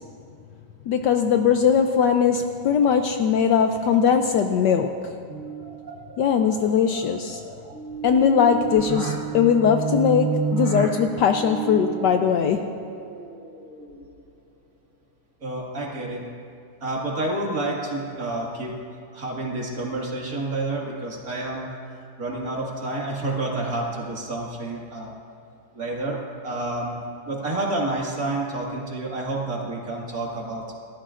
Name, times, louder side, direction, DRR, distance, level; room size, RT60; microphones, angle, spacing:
voice 1, 0.9-5.1 6.2-7.5 8.0-12.7, left 7 dB, 70° left, 6 dB, 1.1 m, -20 dB
sound 1, 5.3-14.4, right 6 dB, 70° right, 0.4 m, -32 dB
voice 2, 15.4-16.2 16.8-18.7 19.1-21.7 22.2-25.1 25.7-26.2 26.4-27.0 27.3-30.7, right 2 dB, 45° right, -2 dB, 2.3 m, -29 dB
29.5 x 13.0 x 2.5 m, 2.3 s
omnidirectional pair, 2.2 m